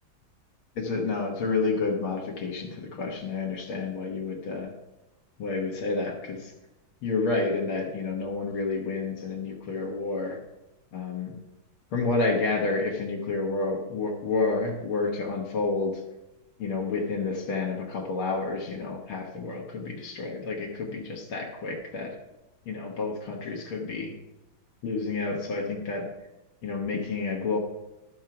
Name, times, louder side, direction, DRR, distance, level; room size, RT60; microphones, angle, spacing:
voice 1, 0.8-4.7 5.4-6.5 7.0-10.4 10.9-11.4 11.9-16.0 16.6-22.2 22.7-24.1 24.8-26.1 26.6-27.6, left 3 dB, 85° left, -1 dB, 2.2 m, -29 dB
12.0 x 5.4 x 5.9 m, 0.97 s
omnidirectional pair, 2.2 m